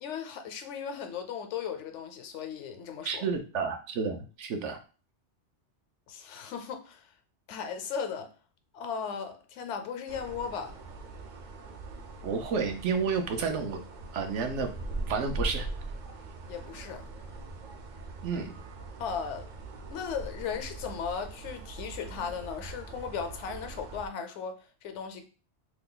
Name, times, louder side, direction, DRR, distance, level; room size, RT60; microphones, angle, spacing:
voice 1, 0.0-3.2 6.1-7.1 7.5-8.3 8.7-10.8 16.5-17.1 19.0-19.5 19.9-25.2, left 6 dB, 80° left, 0.9 m, -37 dB
voice 2, 3.0-4.8 12.2-13.8 14.1-14.7 15.1-15.7 18.2-18.5, right 5 dB, 80° right, 0.9 m, -30 dB
sound 1, 10.1-24.1, right 2 dB, 60° right, 0.5 m, -41 dB
2.8 x 2.3 x 3.7 m
omnidirectional pair, 1.2 m